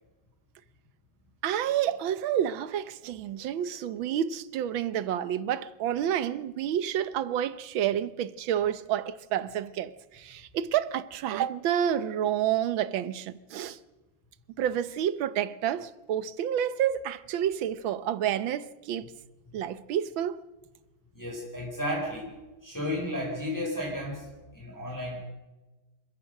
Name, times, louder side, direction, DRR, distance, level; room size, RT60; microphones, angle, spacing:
voice 1, 1.4-13.8 14.6-19.1 19.5-20.4, right 10 dB, 75° right, 1.6 m, -29 dB
voice 2, 21.1-22.4 22.6-25.3, left 1 dB, 10° left, 4.8 m, -33 dB
26.5 x 15.5 x 6.5 m
omnidirectional pair, 2.2 m